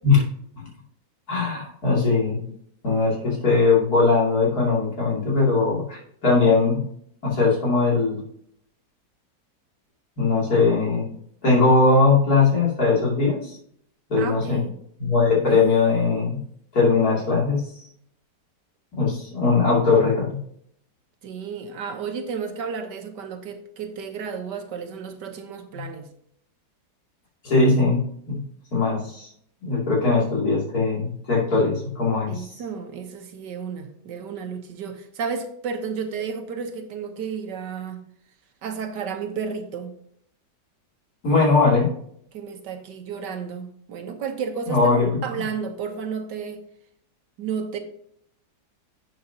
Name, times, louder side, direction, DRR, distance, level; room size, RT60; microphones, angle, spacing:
voice 1, 1.3-2.4 2.8-6.8 7.2-8.2 10.2-11.1 11.4-13.6 14.1-14.6 15.0-16.4 16.7-17.9 18.9-20.4 25.7-25.8 27.4-28.0 28.3-28.4 28.7-29.3 29.6-32.5 41.2-41.9 44.7-45.2, left 4 dB, 60° left, -3 dB, 3.2 m, -20 dB
voice 2, 14.2-14.7 21.2-26.1 32.3-38.0 38.6-39.9 42.3-46.6 47.4-47.8, right 6 dB, 85° right, 6 dB, 1.7 m, -32 dB
11.0 x 7.8 x 2.8 m, 0.68 s
omnidirectional pair, 1.8 m